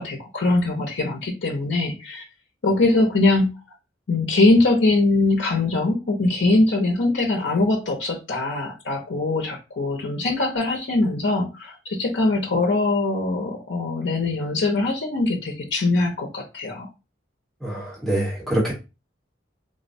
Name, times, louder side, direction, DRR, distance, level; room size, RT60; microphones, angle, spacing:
voice 1, 0.0-2.2 2.6-3.5 4.1-16.9, left 2 dB, 75° left, 1 dB, 0.6 m, -22 dB
voice 2, 17.6-18.7, right 1 dB, ahead, -5 dB, 0.9 m, -25 dB
3.5 x 2.1 x 2.5 m, 0.27 s
head